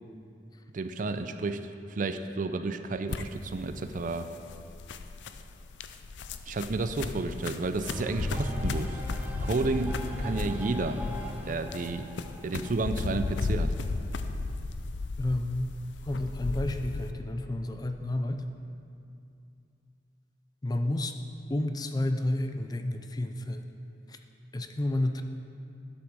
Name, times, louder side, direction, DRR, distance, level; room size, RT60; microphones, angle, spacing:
voice 1, 0.7-1.6 1.9-4.3 6.5-9.0 9.4-11.0 11.4-12.1 12.4-13.7, right 3 dB, 45° right, 9 dB, 0.4 m, -31 dB
sound 1, 3.1-17.1, left 3 dB, 80° left, 0.5 m, -35 dB
sound 2, 7.9-13.6, equal, 10° right, 0.8 m, -39 dB
voice 2, 15.2-15.8 16.1-18.5 20.6-21.1 21.5-23.7 24.1-24.2 24.5-25.2, left 1 dB, 20° left, 7 dB, 0.4 m, -30 dB
12.0 x 6.1 x 6.0 m, 2.6 s
head